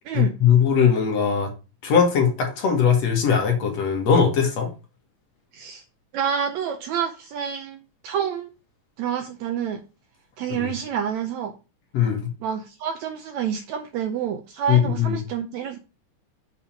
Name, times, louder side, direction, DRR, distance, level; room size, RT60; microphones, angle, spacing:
voice 1, 0.1-1.5 1.8-4.7 10.5-10.7 11.9-12.3 14.7-15.2, left 7 dB, 60° left, 2.3 m, -20 dB
voice 2, 6.1-8.5 9.0-9.8 10.4-11.5 12.4-15.8, right 8 dB, 75° right, 1.7 m, -28 dB
7.2 x 3.5 x 5.8 m
omnidirectional pair, 3.7 m